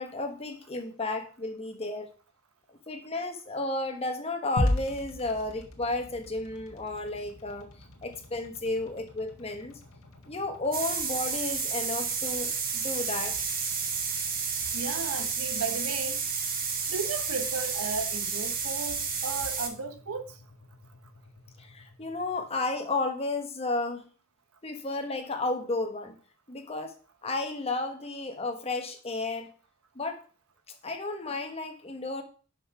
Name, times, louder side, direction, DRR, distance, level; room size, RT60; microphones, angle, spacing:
voice 1, 0.0-2.1 2.9-7.7 8.0-9.7 10.2-13.4 21.6-24.0 24.6-26.2 26.5-26.9 27.2-29.5 29.9-30.2 30.8-32.2, left 2 dB, 30° left, 1.2 m, -33 dB
sound 1, 4.6-22.8, left 1 dB, 75° left, 1.5 m, -40 dB
sound 2, 10.7-19.7, right 5 dB, 45° right, 1.2 m, -31 dB
voice 2, 14.7-16.3 16.9-20.4, right 4 dB, 85° right, 0.9 m, -35 dB
5.8 x 5.4 x 5.6 m
head